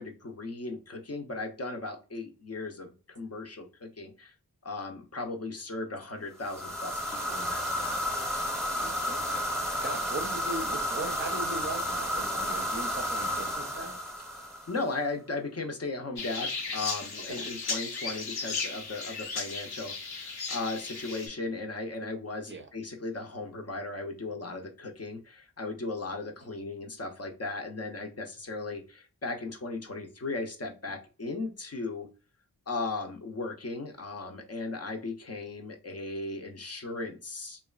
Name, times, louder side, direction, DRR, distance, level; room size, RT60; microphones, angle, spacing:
voice 1, 0.0-4.3 4.6-8.0 14.7-32.1 32.7-37.6, left 3 dB, 40° left, 4 dB, 0.6 m, -37 dB
sound 1, 6.4-14.9, equal, ahead, 0.8 m, -32 dB
voice 2, 8.8-9.4 9.8-14.0 17.3-17.5 22.5-22.7, right 2 dB, 30° right, 4 dB, 0.6 m, -39 dB
sound 2, 16.2-21.3, left 4 dB, 75° left, 0.7 m, -35 dB
3.0 x 2.2 x 2.3 m, 0.33 s
wide cardioid pair, 60°, 38 cm